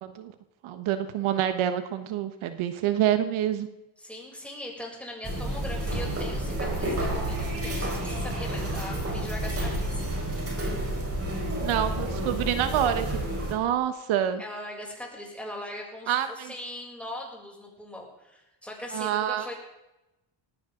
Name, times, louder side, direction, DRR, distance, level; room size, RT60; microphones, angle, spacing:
voice 1, 0.0-0.3 0.6-3.7 11.6-13.1 13.5-14.4 16.1-16.5 18.9-19.5, right 10 dB, 80° right, 9 dB, 1.4 m, -27 dB
voice 2, 4.0-10.0 14.4-19.5, left 1 dB, 5° left, -3 dB, 7.1 m, -40 dB
sound 1, 5.2-13.5, right 1 dB, 30° right, 5.1 m, -30 dB
19.0 x 16.5 x 3.9 m, 0.96 s
cardioid pair, 110°, 48 cm